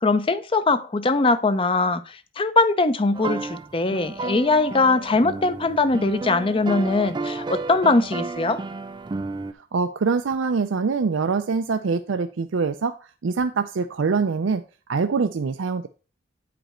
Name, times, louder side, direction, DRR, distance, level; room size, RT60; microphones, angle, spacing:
voice 1, 0.0-8.6, left 3 dB, 30° left, 0.6 m, -21 dB
sound 1, 3.1-9.5, right 3 dB, 25° right, 0.3 m, -32 dB
voice 2, 9.7-12.9 13.2-14.6 14.9-15.9, right 4 dB, 90° right, 0.5 m, -24 dB
9.0 x 5.1 x 4.3 m
head